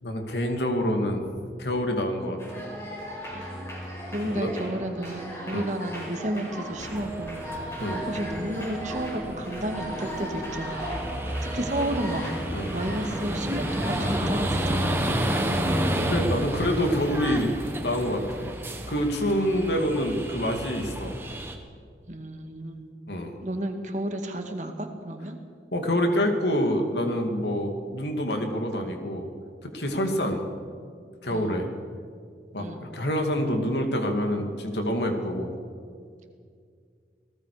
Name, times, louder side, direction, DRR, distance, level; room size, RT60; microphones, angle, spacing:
voice 1, 0.0-1.3 1.6-2.7 4.2-4.5 5.5-5.7 7.8-8.0 12.5-12.7 15.2-15.6 16.1-17.5 17.8-18.5 18.9-21.2 23.1-23.3 25.7-29.3 29.6-30.4 31.2-31.7 32.5-32.7 32.9-35.6, equal, 80° left, 4 dB, 2.6 m, -27 dB
sound 1, 2.4-14.9, equal, 15° left, 5.6 m, -37 dB
voice 2, 4.1-7.4 8.1-10.8 11.5-12.2 12.7-14.9 19.4-19.5 19.7-19.8 22.1-22.9 23.4-25.4 30.0-30.2 31.3-31.5 32.6-32.8, right 1 dB, 45° right, 4 dB, 2.0 m, -32 dB
sound 2, 6.8-21.6, right 1 dB, 15° right, 1.5 m, -31 dB
28.0 x 18.5 x 5.1 m, 2.2 s
head